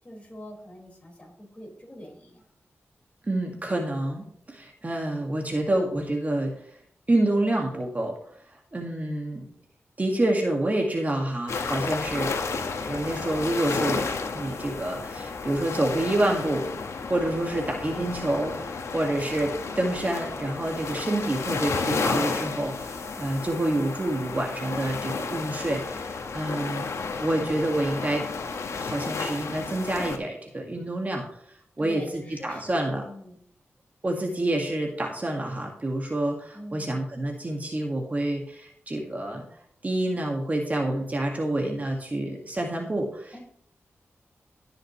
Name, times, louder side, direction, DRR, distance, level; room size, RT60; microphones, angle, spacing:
voice 1, 0.0-2.4 31.8-33.4 36.5-37.0 43.3-43.4, equal, 25° left, -1 dB, 4.7 m, -43 dB
voice 2, 3.3-6.5 7.1-8.1 8.7-9.4 10.0-26.9 27.2-28.3 28.8-31.3 31.8-33.0 34.0-39.4 39.8-43.4, right 1 dB, 35° right, 1 dB, 1.8 m, -28 dB
sound 1, 11.5-30.2, left 4 dB, 85° left, 1.0 m, -32 dB
16.5 x 6.5 x 3.1 m, 0.66 s
cardioid pair, 70°, 5 cm